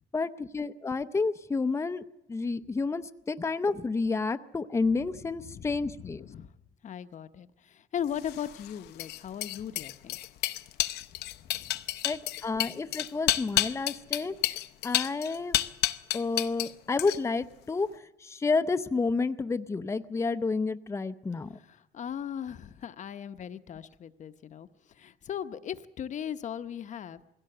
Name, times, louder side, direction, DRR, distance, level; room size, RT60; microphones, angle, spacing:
voice 1, 0.1-2.0 2.3-6.2 12.0-14.4 14.8-15.6 16.1-17.9 18.2-21.6, left 4 dB, 15° left, 11 dB, 0.7 m, -30 dB
voice 2, 5.1-6.5 6.8-10.2 11.4-11.8 21.6-27.2, left 9 dB, 45° left, 12 dB, 0.9 m, -38 dB
sound 1, 8.2-16.7 17.0-17.4, left 14 dB, 75° left, 0.7 m, -30 dB
21.0 x 16.5 x 7.8 m, 0.93 s
cardioid pair, 110°, 17 cm